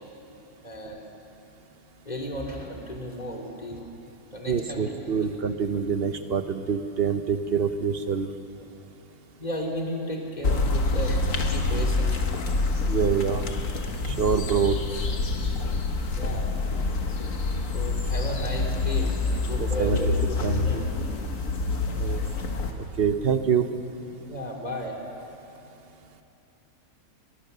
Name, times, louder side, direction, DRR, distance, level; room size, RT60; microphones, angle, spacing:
voice 1, 0.6-1.1 2.0-3.8 4.3-4.9 5.2-5.4 8.6-8.7 9.4-12.2 15.4-15.8 16.1-16.5 17.7-21.1 24.1-25.0, equal, 30° left, 0 dB, 3.0 m, -34 dB
voice 2, 4.5-8.3 12.9-13.5 14.0-14.8 19.6-20.0 20.4-20.9 22.0-22.2 22.8-23.7, right 7 dB, 45° right, 9 dB, 1.0 m, -26 dB
sound 1, 10.4-22.7, left 3 dB, 60° left, 1.8 m, -26 dB
23.0 x 20.0 x 6.8 m, 2.9 s
omnidirectional pair, 1.6 m